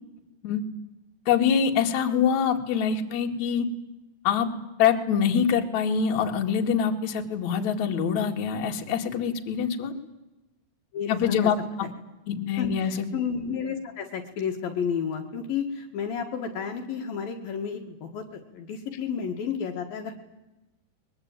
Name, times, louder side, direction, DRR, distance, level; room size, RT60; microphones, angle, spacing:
voice 1, 1.3-3.7 4.2-4.5 4.8-9.9 11.1-11.6 12.3-13.0, left 7 dB, 50° left, 3 dB, 3.1 m, -24 dB
voice 2, 10.9-11.5 12.6-20.1, left 6 dB, 65° left, 3 dB, 3.3 m, -31 dB
22.5 x 22.5 x 9.1 m, 1.0 s
omnidirectional pair, 4.7 m